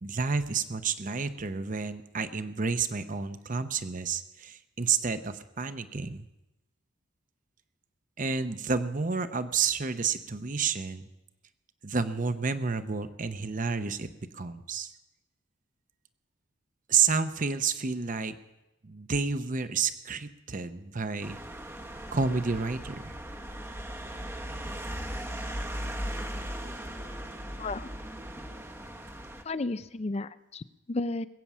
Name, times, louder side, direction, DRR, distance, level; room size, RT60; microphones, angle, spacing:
voice 1, 0.0-6.2 8.2-11.1 11.8-14.9 16.9-18.4 18.8-21.4 22.1-23.2, right 5 dB, 40° right, 11 dB, 0.8 m, -30 dB
sound 1, 21.2-29.4, equal, 10° right, 0.9 m, -38 dB
voice 2, 27.6-27.9 29.4-31.3, left 2 dB, 30° left, 14 dB, 0.5 m, -33 dB
21.5 x 8.6 x 6.1 m, 0.96 s
head